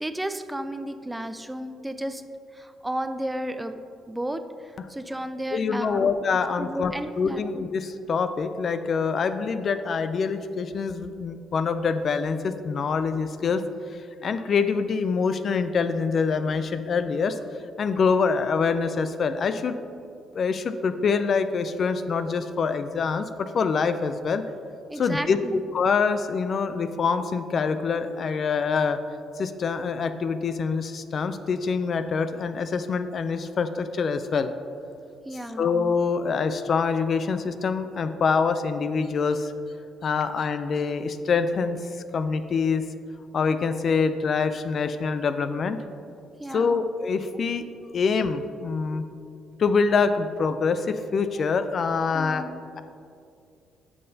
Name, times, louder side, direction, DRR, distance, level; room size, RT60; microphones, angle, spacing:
voice 1, 0.0-2.2 2.5-3.8 4.1-6.1 6.6-7.5 24.9-25.6 35.2-35.7 46.4-46.8 52.1-52.6, right 1 dB, 10° right, 9 dB, 0.4 m, -33 dB
voice 2, 5.5-13.6 14.2-17.4 17.8-19.8 20.3-24.4 25.0-25.4 25.7-29.0 29.4-34.5 35.6-39.5 40.0-41.8 42.1-42.8 43.3-45.8 46.5-47.7 47.9-49.0 49.6-52.5, left 5 dB, 55° left, 10 dB, 0.3 m, -25 dB
9.3 x 5.5 x 2.7 m, 2.5 s
supercardioid pair, 60°, 0 cm